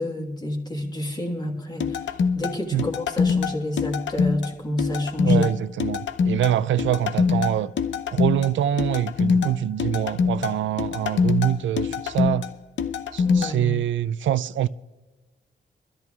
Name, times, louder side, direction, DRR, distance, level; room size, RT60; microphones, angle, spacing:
voice 1, 0.0-1.8 2.3-5.4 13.2-13.7, left 1 dB, 20° left, 1.5 m, -28 dB
sound 1, 1.8-13.5, left 5 dB, 80° left, 0.7 m, -24 dB
voice 2, 5.2-7.7 8.1-12.5 13.1-14.7, right 11 dB, 85° right, 0.4 m, -24 dB
24.0 x 13.5 x 2.4 m
wide cardioid pair, 140°, 19 cm